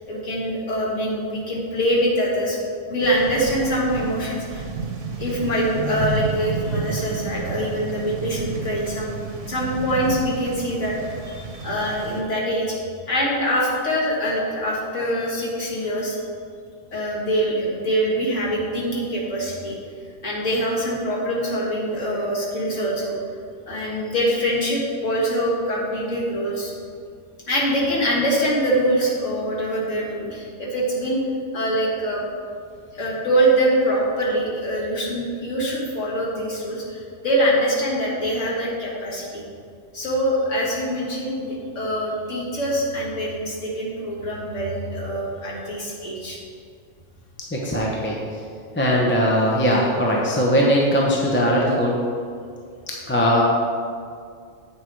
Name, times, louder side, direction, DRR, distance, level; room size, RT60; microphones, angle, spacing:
voice 1, 0.0-2.6 2.9-4.6 5.2-9.2 9.5-16.2 16.9-19.8 20.2-23.1 23.7-26.7 27.5-31.2 31.5-32.3 32.9-39.4 39.9-46.4, equal, 80° left, -4 dB, 2.2 m, -24 dB
sound 1, 3.0-12.2, right 4 dB, 75° right, 1.4 m, -31 dB
voice 2, 47.5-48.2 48.8-52.0 53.1-53.4, equal, 10° left, -3 dB, 0.9 m, -19 dB
8.3 x 6.4 x 4.6 m, 2.2 s
omnidirectional pair, 1.3 m